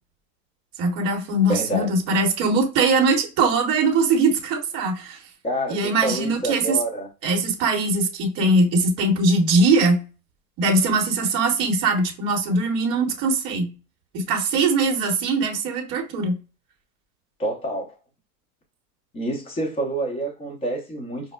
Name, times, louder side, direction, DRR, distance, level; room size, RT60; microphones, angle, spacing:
voice 1, 0.8-5.2 5.7-6.8 7.2-10.0 10.6-13.7 14.1-16.4, right 2 dB, 30° right, 0.9 m, -21 dB
voice 2, 1.5-1.9 5.4-7.1 17.4-17.9 19.1-21.3, right 1 dB, 10° left, 0.7 m, -27 dB
5.3 x 2.0 x 2.2 m
supercardioid pair, 145°, 48 cm